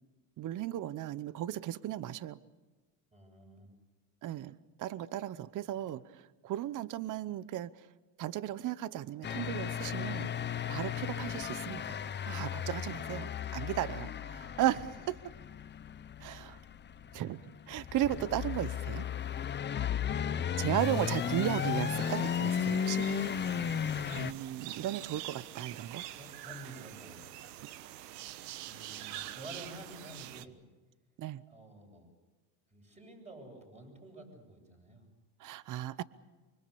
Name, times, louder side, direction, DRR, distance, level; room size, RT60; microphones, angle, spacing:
voice 1, 0.4-2.4 4.2-4.5 4.8-7.7 8.2-10.3 10.7-12.0 12.2-15.2 16.2-16.6 17.1-17.4 17.7-19.1 20.6-23.1 24.1-26.1 31.2-31.4 35.4-36.0, right 12 dB, 40° right, 18 dB, 0.9 m, -35 dB
voice 2, 3.1-3.7 20.0-21.1 26.1-27.3 28.7-30.6 31.5-32.1 32.7-35.1, right 1 dB, 15° right, 2 dB, 7.9 m, -51 dB
sound 1, 9.2-24.3, left 8 dB, 20° left, 0.8 m, -35 dB
sound 2, 20.8-30.5, right 13 dB, 80° right, 1.3 m, -46 dB
25.5 x 25.0 x 7.0 m, 1.2 s
supercardioid pair, 110°, 48 cm